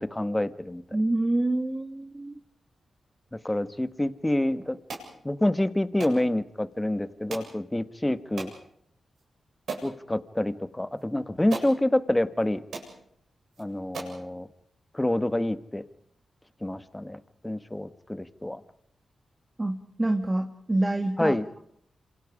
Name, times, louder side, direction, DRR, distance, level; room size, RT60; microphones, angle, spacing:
voice 1, 0.0-0.8 3.4-4.8 5.2-8.5 9.8-12.6 13.6-14.5 14.9-15.8 16.6-18.6 21.2-21.5, left 1 dB, 15° left, 11 dB, 1.4 m, -27 dB
voice 2, 0.9-2.3 19.6-21.6, right 2 dB, 20° right, 4 dB, 2.0 m, -27 dB
sound 1, 4.9-5.1 6.0-6.2 7.3-7.5 8.4-8.6 9.2-9.3 9.7-9.9 11.0-11.1 11.5-11.7 12.4-12.5 12.7-12.9 13.5-13.6 13.9-14.2, right 4 dB, 75° right, 7.9 m, -36 dB
28.0 x 26.5 x 5.0 m, 0.69 s
cardioid pair, 75°, 0 cm